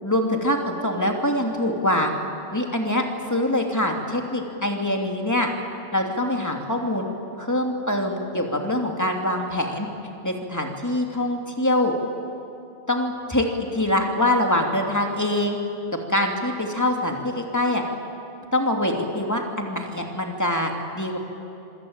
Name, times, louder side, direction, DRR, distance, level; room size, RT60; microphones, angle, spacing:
voice 1, 0.0-2.1 2.5-5.5 5.9-7.1 7.4-9.9 10.2-11.9 12.9-13.4 13.7-15.6 16.1-17.8 18.5-21.2, left 1 dB, 15° left, 2 dB, 2.7 m, -24 dB
25.5 x 24.5 x 8.9 m, 2.7 s
omnidirectional pair, 1.2 m